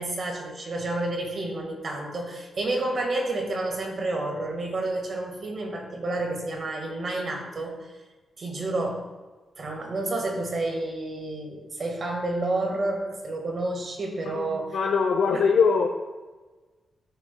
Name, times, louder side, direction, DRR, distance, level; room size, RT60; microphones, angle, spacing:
voice 1, 0.0-7.9 8.4-9.1 9.6-14.8 15.3-15.5, right 2 dB, 45° right, 1 dB, 1.7 m, -30 dB
voice 2, 14.3-15.9, left 5 dB, 80° left, 3 dB, 0.7 m, -22 dB
13.0 x 6.7 x 2.3 m, 1.3 s
wide cardioid pair, 130°, 0 cm